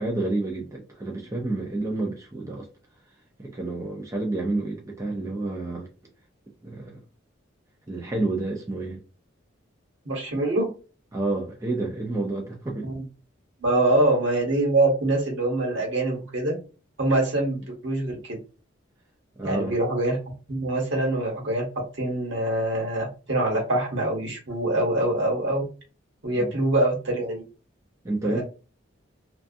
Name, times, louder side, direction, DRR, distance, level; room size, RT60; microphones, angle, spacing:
voice 1, 0.0-2.7 3.4-5.9 6.6-7.0 7.9-9.0 11.1-12.9 19.4-19.8 26.3-26.5 28.0-28.4, right 2 dB, 15° right, 0.4 m, -29 dB
voice 2, 10.0-10.7 12.8-13.0 13.6-16.6 17.0-18.4 19.4-20.2 20.5-21.7 22.0-25.6 26.2-27.4 28.2-28.4, right 1 dB, 65° right, 1.1 m, -24 dB
2.5 x 2.3 x 2.4 m
head